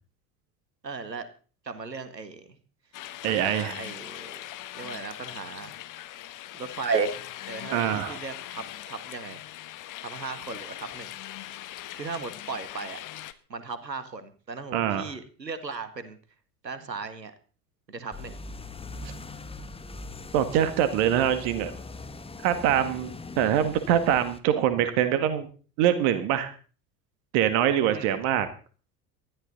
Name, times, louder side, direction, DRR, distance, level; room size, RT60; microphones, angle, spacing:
voice 1, 0.8-1.3 1.6-2.6 3.3-4.4 4.7-5.8 6.5-7.2 7.5-9.4 10.0-11.1 11.9-13.0 13.5-16.2 16.6-17.3 17.9-18.4 22.7-23.0 27.9-28.2, right 4 dB, 85° right, 12 dB, 1.7 m, -35 dB
sound 1, 2.9-13.3, left 14 dB, 40° left, 1.4 m, -41 dB
voice 2, 3.2-3.7 7.7-8.2 14.7-15.1 20.3-21.7 22.4-25.5 25.8-26.5 27.3-28.5, right 10 dB, 50° right, 11 dB, 1.9 m, -24 dB
sound 2, 18.1-24.4, left 3 dB, 10° left, 1.4 m, -41 dB
20.0 x 13.5 x 4.1 m, 0.39 s
figure-of-eight pair, 70°, 48 cm